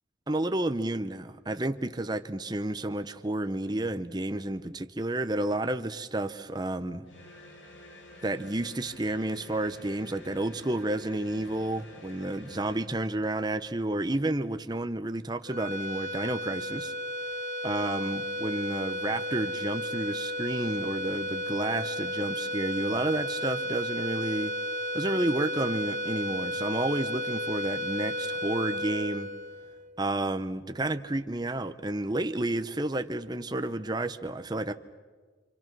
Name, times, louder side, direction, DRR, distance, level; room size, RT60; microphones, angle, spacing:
voice 1, 0.3-7.0 8.2-16.9 17.6-24.5 24.9-29.3 30.0-34.7, right 1 dB, 20° right, 9 dB, 0.8 m, -31 dB
sound 1, 7.1-13.0, left 2 dB, 75° left, 2.6 m, -49 dB
sound 2, 15.5-30.0, equal, 45° right, 2.2 m, -33 dB
27.5 x 27.5 x 6.1 m, 1.4 s
head